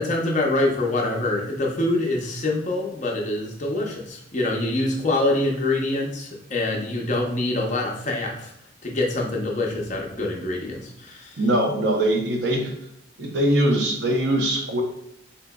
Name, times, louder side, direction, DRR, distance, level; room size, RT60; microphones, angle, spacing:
voice 1, 0.0-8.5 8.8-11.3, left 2 dB, 40° left, -1 dB, 0.6 m, -25 dB
voice 2, 11.4-12.7 13.2-14.8, right 1 dB, 65° right, 1 dB, 0.6 m, -22 dB
3.6 x 2.8 x 2.2 m, 0.76 s
head